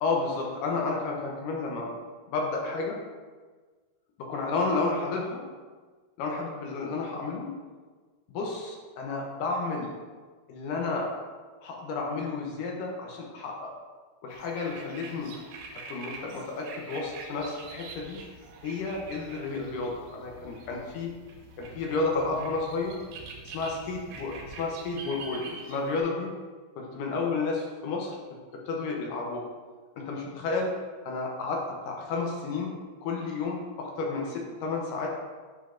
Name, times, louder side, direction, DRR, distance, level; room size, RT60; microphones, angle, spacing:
voice 1, 0.0-1.9 2.3-3.0 4.2-5.4 6.2-7.5 8.3-9.9 10.5-11.1 11.6-13.7 14.2-15.3 15.9-18.2 18.6-21.1 21.6-23.0 23.5-26.3 26.8-28.1 28.7-29.5 30.0-30.7 31.1-32.7 33.0-35.1, left 3 dB, 75° left, -1 dB, 2.2 m, -31 dB
sound 1, 14.3-26.0, right 3 dB, 75° right, 2.4 m, -45 dB
8.5 x 5.5 x 2.5 m, 1.4 s
omnidirectional pair, 4.3 m